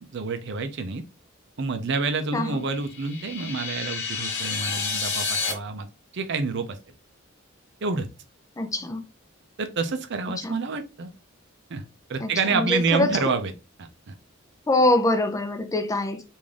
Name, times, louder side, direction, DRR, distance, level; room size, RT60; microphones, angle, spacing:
voice 1, 0.0-1.0 1.6-5.9 6.1-6.8 7.8-8.1 9.6-11.1 11.7-11.8 12.1-13.5 13.8-14.1, right 4 dB, 60° right, 0.5 m, -28 dB
sound 1, 2.7-5.5, left 5 dB, 60° left, 1.0 m, -29 dB
voice 2, 8.6-9.0 10.4-10.6 12.2-13.1 14.7-16.2, left 2 dB, 15° left, 0.5 m, -24 dB
3.6 x 2.6 x 3.2 m
head